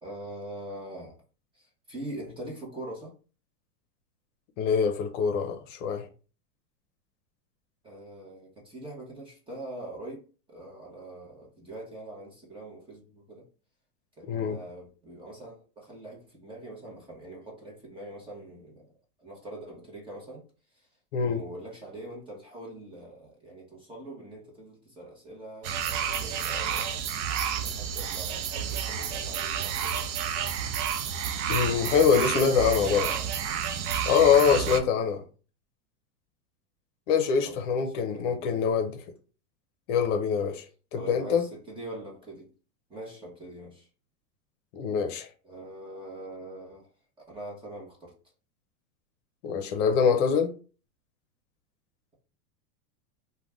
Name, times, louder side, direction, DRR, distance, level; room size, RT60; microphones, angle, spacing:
voice 1, 0.0-1.2 1.5-3.1 7.8-13.5 14.2-18.9 19.2-20.4 20.7-20.9 21.2-27.1 27.6-30.1 32.2-33.3 34.5-35.2 37.4-38.6 41.0-42.5 42.9-43.9 45.4-46.9 47.3-48.1, right 1 dB, 10° right, 0.8 m, -43 dB
voice 2, 4.6-6.1 14.3-14.6 21.1-21.4 31.5-33.1 34.1-35.2 37.1-38.9 39.9-40.6 40.9-41.4 44.7-45.3 49.4-50.5, left 6 dB, 55° left, 0.7 m, -24 dB
sound 1, 25.6-34.8, right 8 dB, 55° right, 0.5 m, -30 dB
2.4 x 2.2 x 3.3 m
supercardioid pair, 140°, 44 cm